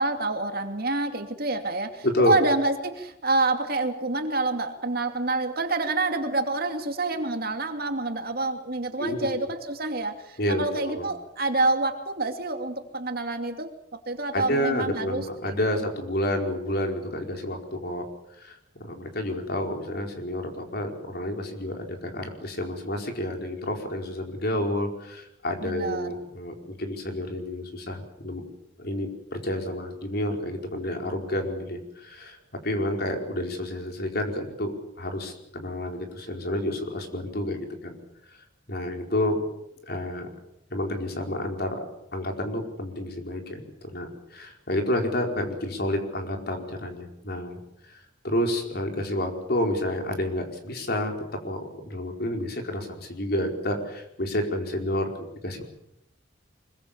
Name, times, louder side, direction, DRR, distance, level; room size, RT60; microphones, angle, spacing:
voice 1, 0.0-13.7 14.1-15.8 25.6-26.1, right 2 dB, 50° right, 6 dB, 2.6 m, -27 dB
voice 2, 9.0-9.4 10.4-11.1 14.3-18.0 18.4-28.4 28.8-32.4 32.6-38.0 38.7-39.4 39.8-40.3 40.7-41.8 42.1-47.6 47.9-51.1 51.4-55.6, left 1 dB, 55° left, 3 dB, 4.6 m, -30 dB
25.0 x 22.5 x 7.4 m, 0.81 s
head